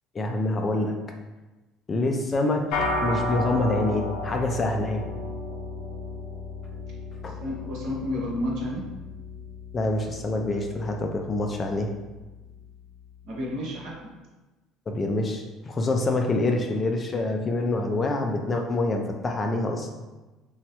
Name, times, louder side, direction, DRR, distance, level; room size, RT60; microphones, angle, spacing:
voice 1, 0.1-1.0 1.9-2.7 3.0-5.0 7.2-7.4 9.7-11.9 14.9-19.9, left 2 dB, 25° left, 3 dB, 0.3 m, -26 dB
sound 1, 2.7-12.2, left 2 dB, 75° left, 0.6 m, -33 dB
voice 2, 7.2-8.9 13.2-14.1, left 1 dB, 60° right, -3 dB, 0.9 m, -31 dB
3.0 x 2.2 x 2.9 m, 1.1 s
cardioid pair, 135°, 0 cm